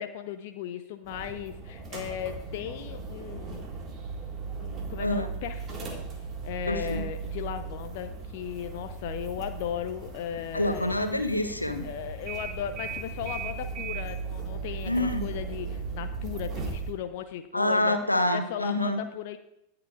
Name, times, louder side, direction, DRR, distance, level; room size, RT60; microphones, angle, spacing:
voice 1, 0.0-3.6 4.6-6.0 6.4-10.9 11.8-18.0 18.3-19.4, left 10 dB, 50° left, 9 dB, 0.6 m, -36 dB
sound 1, 1.0-16.9, right 5 dB, 30° right, 1.9 m, -37 dB
voice 2, 5.0-5.3 6.7-7.0 10.5-11.8 14.9-15.3 17.5-19.0, left 1 dB, 85° left, 8 dB, 0.9 m, -27 dB
18.0 x 6.7 x 2.5 m, 0.81 s
figure-of-eight pair, 90°, 0 cm